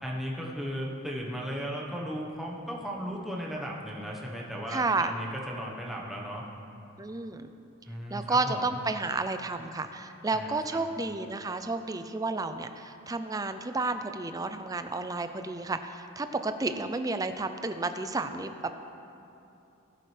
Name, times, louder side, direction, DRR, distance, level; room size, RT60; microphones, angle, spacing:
voice 1, 0.0-6.4 7.9-8.7 10.3-10.8, equal, ahead, -3 dB, 1.1 m, -36 dB
voice 2, 4.7-5.1 7.0-7.5 8.1-18.7, right 3 dB, 15° right, 9 dB, 0.4 m, -31 dB
19.0 x 7.7 x 3.3 m, 2.8 s
head